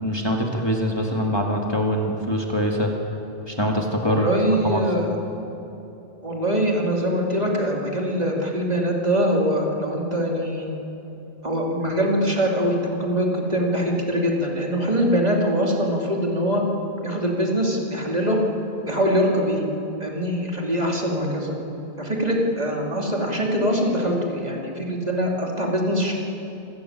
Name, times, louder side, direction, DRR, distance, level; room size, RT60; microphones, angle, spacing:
voice 1, 0.0-2.9 3.5-4.3 4.6-4.8, equal, 25° left, 0 dB, 2.1 m, -23 dB
voice 2, 4.0-5.1 6.2-10.7 11.4-16.6 17.0-18.4 18.9-19.6 20.0-21.5 22.0-26.1, equal, 40° right, -1 dB, 3.1 m, -23 dB
27.0 x 14.0 x 9.1 m, 2.9 s
omnidirectional pair, 1.0 m